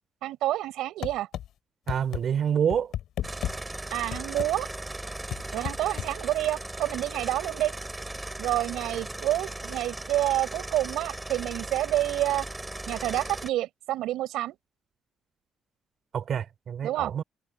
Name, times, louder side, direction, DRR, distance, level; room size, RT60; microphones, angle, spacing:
voice 1, 0.2-1.3 3.9-4.7 5.5-7.7 8.4-12.5 12.9-14.5 16.8-17.1, right 14 dB, 90° right, 5.0 m, -28 dB
sound 1, 1.0-1.5 1.9-2.2 2.7-3.6 4.1-4.5 5.3-6.1, left 11 dB, 80° left, 3.5 m, -32 dB
voice 2, 1.9-2.9 16.1-17.2, right 8 dB, 60° right, 4.2 m, -27 dB
sound 2, 3.2-13.5, right 2 dB, 10° right, 5.5 m, -37 dB
cardioid pair, 90°, 0 cm